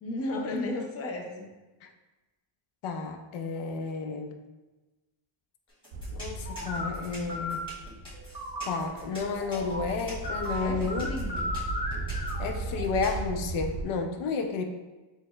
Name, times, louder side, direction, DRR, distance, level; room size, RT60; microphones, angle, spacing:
voice 1, 0.0-1.5 10.6-11.6, left 2 dB, 30° left, 1 dB, 0.5 m, -34 dB
voice 2, 2.8-4.4 6.1-7.6 8.6-11.1 12.4-14.6, left 4 dB, 90° left, 4 dB, 0.6 m, -32 dB
sound 1, 5.7-13.2, equal, 10° left, 1.4 m, -45 dB
sound 2, 5.9-13.8, right 2 dB, 75° right, 0.6 m, -37 dB
sound 3, 6.5-6.9 7.3-7.5 8.1-13.4, left 1 dB, 10° right, 0.7 m, -36 dB
6.1 x 2.1 x 2.2 m, 1.2 s
cardioid pair, 125°, 48 cm